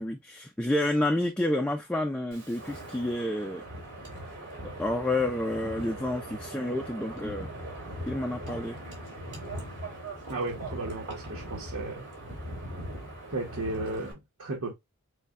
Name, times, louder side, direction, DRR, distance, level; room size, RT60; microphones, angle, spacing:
voice 1, 0.0-3.6 4.8-7.5 8.0-8.8, left 1 dB, 5° left, 0.3 m, -29 dB
Wind, 2.3-14.1, right 1 dB, 55° right, 2.3 m, -40 dB
voice 2, 10.3-12.1 13.3-14.7, right 2 dB, 85° right, 1.1 m, -34 dB
6.6 x 2.2 x 2.4 m
head